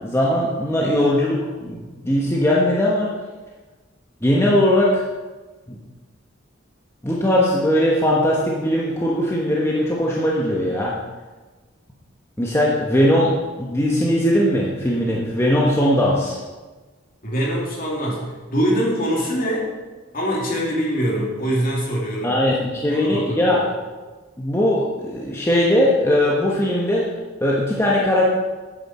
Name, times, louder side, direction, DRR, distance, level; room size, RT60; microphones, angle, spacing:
voice 1, 0.0-3.1 4.2-5.0 7.0-10.9 12.4-16.4 22.2-23.6 24.4-27.0 27.4-28.3, left 1 dB, 15° left, -4 dB, 1.2 m, -19 dB
voice 2, 17.2-18.2 18.5-19.7 20.1-22.4 22.9-23.6, equal, 45° left, -3 dB, 2.9 m, -23 dB
12.5 x 9.2 x 4.4 m, 1.3 s
head